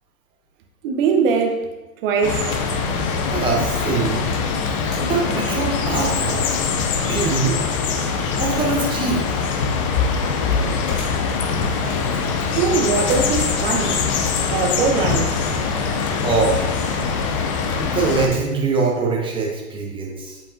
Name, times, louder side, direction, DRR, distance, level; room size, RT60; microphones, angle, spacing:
voice 1, 0.8-1.7 2.0-2.6 12.5-14.1 14.5-15.5, right 5 dB, 40° right, 4 dB, 0.9 m, -21 dB
sound 1, 2.2-18.3, left 5 dB, 25° left, 0.4 m, -23 dB
sound 2, 2.4-17.0 17.4-18.7, left 5 dB, 55° left, 1.6 m, -42 dB
voice 2, 3.3-4.3 5.0-6.6 7.1-7.6 8.4-9.2 16.2-16.8 17.8-20.4, right 4 dB, 10° right, -1 dB, 1.0 m, -23 dB
7.8 x 5.2 x 2.6 m, 1.1 s
hypercardioid pair, 120°, 44 cm